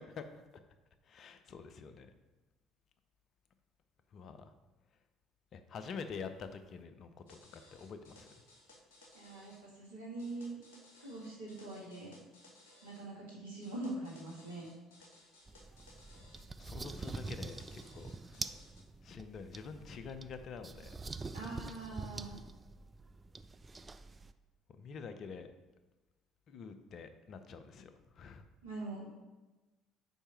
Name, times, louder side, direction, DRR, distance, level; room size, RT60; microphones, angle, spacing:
voice 1, 0.1-0.4 1.0-2.1 4.1-4.5 5.5-8.3 16.2-16.3 16.6-18.5 19.0-21.0 24.8-25.5 26.5-28.4, left 5 dB, 50° left, 9 dB, 0.7 m, -47 dB
sound 1, 7.3-9.6 10.2-13.1 13.6-16.5 17.0-18.8, left 1 dB, 75° left, 1.2 m, -61 dB
voice 2, 9.1-10.6 11.0-12.1 12.8-14.7 21.3-22.4 28.6-29.1, right 2 dB, 80° right, -3 dB, 1.9 m, -43 dB
sound 2, 15.5-24.3, right 3 dB, 25° right, 0.4 m, -46 dB
5.4 x 4.8 x 5.9 m, 1.2 s
figure-of-eight pair, 55°, 0 cm